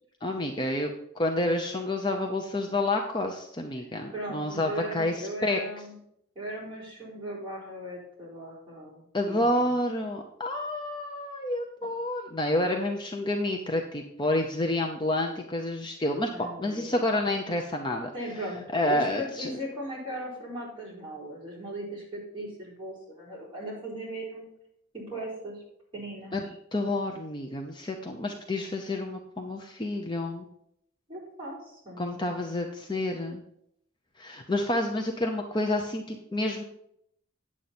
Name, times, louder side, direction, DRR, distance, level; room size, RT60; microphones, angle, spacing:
voice 1, 0.2-5.6 9.1-18.1 18.7-19.5 26.3-26.4 26.7-30.5 32.0-33.4 34.2-36.6, left 1 dB, 25° left, 2 dB, 0.7 m, -29 dB
voice 2, 4.1-5.9 6.3-9.7 11.8-11.9 16.3-17.0 18.1-18.6 18.8-24.5 24.9-25.6 25.9-26.4 31.1-32.2, right 1 dB, 25° right, -6 dB, 4.4 m, -38 dB
9.4 x 7.6 x 4.3 m, 0.73 s
head